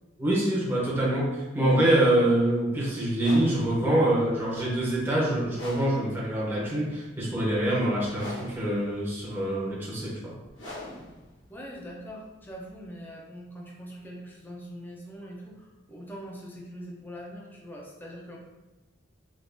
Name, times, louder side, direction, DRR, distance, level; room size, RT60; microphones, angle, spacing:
voice 1, 0.2-10.3, right 1 dB, 10° right, -7 dB, 0.8 m, -25 dB
sound 1, 3.1-13.0, left 1 dB, 65° left, 1.2 m, -45 dB
voice 2, 11.5-18.4, equal, 10° left, -2 dB, 0.5 m, -42 dB
3.5 x 2.5 x 2.6 m, 1.1 s
head